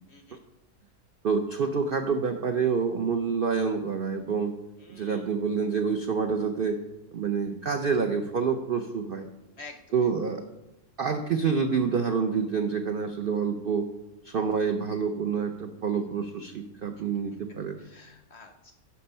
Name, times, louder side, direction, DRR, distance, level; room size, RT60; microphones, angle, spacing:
voice 1, 0.1-0.4 4.8-5.3 9.6-9.8 17.8-18.7, left 3 dB, 65° left, 6 dB, 0.7 m, -48 dB
voice 2, 1.2-4.5 4.9-6.8 7.1-9.3 9.9-10.4 11.0-13.9 14.2-17.8, right 5 dB, 70° right, 6 dB, 0.5 m, -27 dB
11.5 x 4.3 x 5.4 m, 0.95 s
omnidirectional pair, 1.7 m